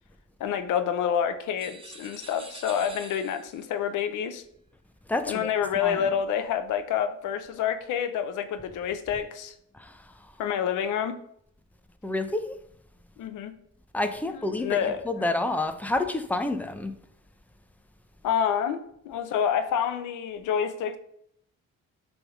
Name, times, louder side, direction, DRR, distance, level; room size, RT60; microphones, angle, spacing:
voice 1, 0.4-4.4 5.3-9.5 10.4-11.2 13.2-13.5 14.6-15.0 18.2-21.0, left 8 dB, 85° left, 0.9 m, -28 dB
sound 1, 1.6-3.7, right 2 dB, 20° right, 1.3 m, -46 dB
voice 2, 5.1-5.5 5.7-6.1 9.7-10.4 12.0-12.6 13.9-16.9, left 2 dB, 5° left, 0.9 m, -29 dB
8.8 x 3.8 x 6.3 m
cardioid pair, 90°, 30 cm